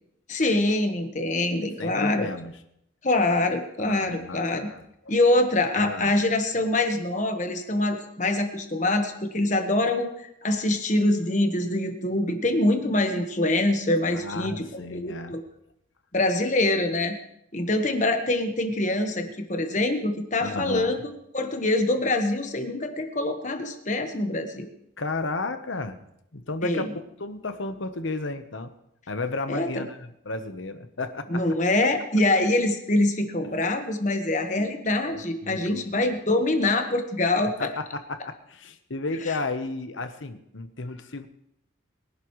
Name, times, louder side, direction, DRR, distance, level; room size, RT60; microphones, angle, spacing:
voice 1, 0.3-2.3 3.0-4.7 5.1-15.4 16.1-17.2 17.5-24.7 26.6-26.9 29.5-29.9 31.3-37.7 39.3-39.4, left 2 dB, 40° left, 6 dB, 1.4 m, -24 dB
voice 2, 1.8-2.5 3.8-5.1 5.7-6.1 14.1-15.4 20.4-21.0 25.0-26.0 26.3-26.9 27.2-28.7 29.1-31.4 34.5-34.7 35.0-36.1 37.6-41.3, left 3 dB, 75° left, 9 dB, 1.1 m, -33 dB
22.5 x 11.5 x 3.2 m, 0.77 s
head